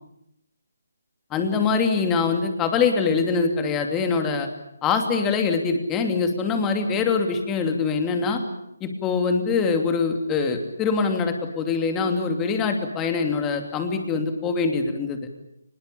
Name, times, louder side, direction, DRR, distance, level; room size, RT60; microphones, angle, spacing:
voice 1, 1.3-4.5 4.8-8.4 8.8-15.2, left 5 dB, 15° left, 5 dB, 2.8 m, -23 dB
24.0 x 21.0 x 8.6 m, 0.81 s
figure-of-eight pair, 155°, 0 cm